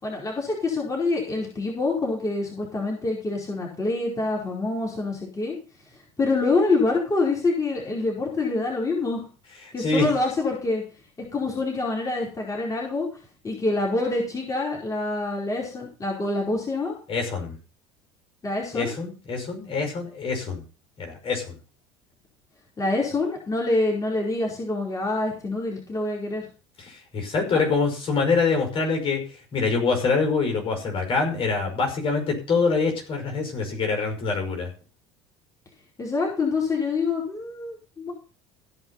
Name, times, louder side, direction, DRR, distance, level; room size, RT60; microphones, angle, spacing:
voice 1, 0.0-5.6 6.2-9.2 9.7-10.8 11.3-13.1 13.4-17.0 18.4-18.9 22.8-26.4 36.0-38.1, left 3 dB, 25° left, -2 dB, 4.8 m, -26 dB
voice 2, 9.8-10.1 17.1-17.6 18.7-20.6 21.0-21.6 26.8-29.2 29.5-34.7, left 4 dB, 40° left, 3 dB, 5.5 m, -25 dB
16.0 x 5.7 x 5.7 m, 0.36 s
hypercardioid pair, 75°, 14 cm